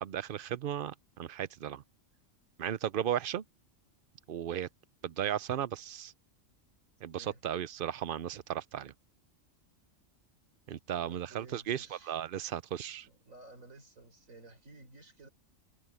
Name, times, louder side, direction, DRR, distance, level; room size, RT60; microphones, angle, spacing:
voice 1, 0.0-1.8 2.6-3.4 4.3-4.7 5.0-6.1 7.0-8.9 10.7-13.1, right 10 dB, 55° right, 0.6 m, -35 dB
voice 2, 11.0-12.1 13.0-15.3, right 2 dB, 90° right, 4.6 m, -54 dB
omnidirectional pair, 1.3 m